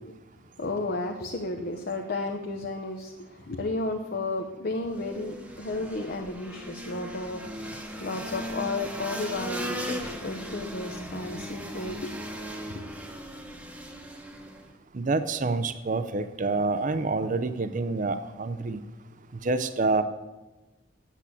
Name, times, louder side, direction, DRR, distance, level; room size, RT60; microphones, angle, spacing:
voice 1, 0.6-12.2 12.7-12.8, left 2 dB, 50° left, 3 dB, 0.8 m, -33 dB
sound 1, 4.9-14.7, equal, 5° right, 1.0 m, -38 dB
voice 2, 14.9-18.8 19.4-20.0, right 3 dB, 40° right, 11 dB, 0.5 m, -27 dB
8.3 x 7.2 x 8.3 m, 1.1 s
head